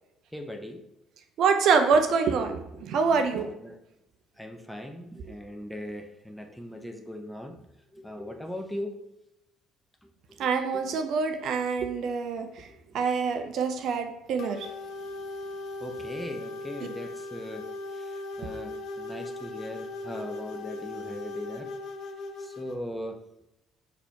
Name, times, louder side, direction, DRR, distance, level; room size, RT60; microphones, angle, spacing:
voice 1, 0.3-0.8 3.4-3.8 4.4-7.6 7.9-9.0 10.0-10.1 10.4-11.0 12.7-13.1 15.8-21.7 22.4-23.2, left 1 dB, 5° left, 5 dB, 0.7 m, -39 dB
voice 2, 1.4-3.5 10.4-12.7 12.9-14.7, right 5 dB, 55° right, 6 dB, 0.5 m, -25 dB
sound 1, 14.4-22.8, left 2 dB, 60° left, 0.5 m, -38 dB
4.1 x 2.8 x 4.5 m, 0.87 s
figure-of-eight pair, 50°, 0 cm